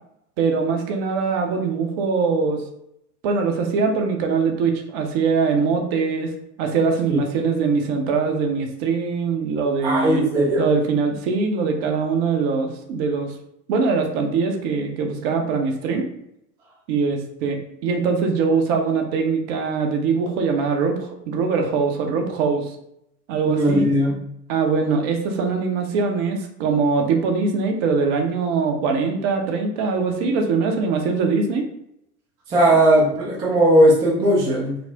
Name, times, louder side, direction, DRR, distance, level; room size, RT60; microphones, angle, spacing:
voice 1, 0.4-2.6 3.2-6.3 6.6-10.2 10.6-13.3 13.7-16.1 16.9-22.8 23.3-23.9 24.5-31.6, right 4 dB, 45° right, 4 dB, 0.7 m, -22 dB
voice 2, 9.8-10.6 23.5-24.1 32.5-34.8, right 1 dB, 10° right, -4 dB, 0.4 m, -17 dB
4.1 x 2.0 x 2.8 m, 0.78 s
figure-of-eight pair, 85°, 47 cm